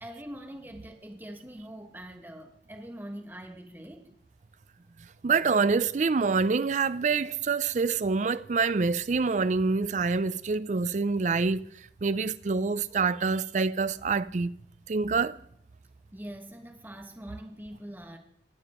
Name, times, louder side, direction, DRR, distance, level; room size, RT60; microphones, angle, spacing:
voice 1, 0.0-4.1 16.1-18.2, equal, 10° right, 1.2 m, -43 dB
voice 2, 5.2-11.7 12.0-14.5 14.9-15.4, right 4 dB, 40° right, 0.4 m, -26 dB
19.5 x 7.1 x 4.3 m
head